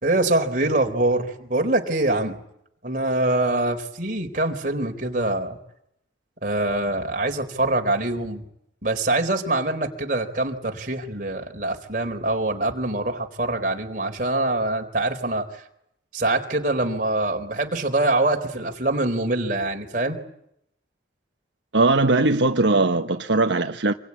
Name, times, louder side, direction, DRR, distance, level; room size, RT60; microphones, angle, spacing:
voice 1, 0.0-2.4 2.8-5.6 6.4-8.4 8.8-15.5 16.1-20.2, right 2 dB, 45° right, 4.0 m, -24 dB
voice 2, 21.7-23.9, right 2 dB, 85° right, 1.3 m, -20 dB
27.0 x 22.5 x 9.8 m
head